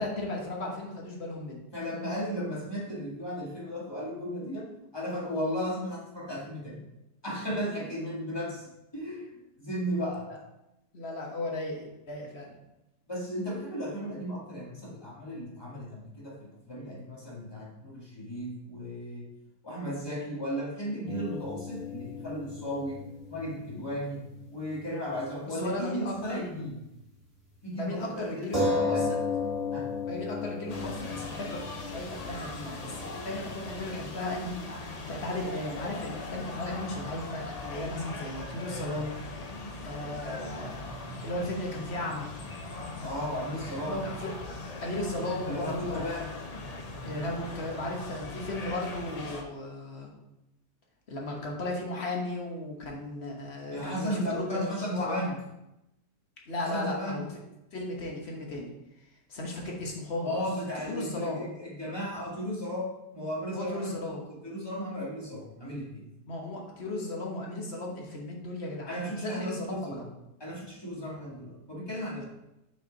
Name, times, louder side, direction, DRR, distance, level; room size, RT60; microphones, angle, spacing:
voice 1, 0.0-1.6 10.3-10.4 10.9-12.5 25.4-26.4 27.7-29.2 30.0-39.2 39.8-40.8 41.2-42.3 43.5-44.3 44.8-46.2 47.0-50.1 51.1-55.2 56.5-57.3 57.7-58.7 59.0-60.4 60.8-61.4 63.5-64.3 66.3-70.1, left 1 dB, 40° left, -1 dB, 1.3 m, -36 dB
voice 2, 1.7-6.8 7.2-9.3 9.6-10.3 13.1-19.3 19.6-23.0 23.3-24.2 24.5-26.7 27.6-29.1 29.7-29.9 43.0-44.0 45.5-46.3 53.7-55.4 56.6-57.3 60.2-66.0 68.9-70.0 70.4-72.2, equal, 15° left, -5 dB, 1.8 m, -35 dB
sound 1, 21.1-24.9 25.2-25.3 28.5-33.7, left 3 dB, 20° right, 2.3 m, -34 dB
sound 2, 30.7-49.4, left 2 dB, 65° left, 0.4 m, -40 dB
6.7 x 4.4 x 3.9 m, 0.90 s
omnidirectional pair, 1.8 m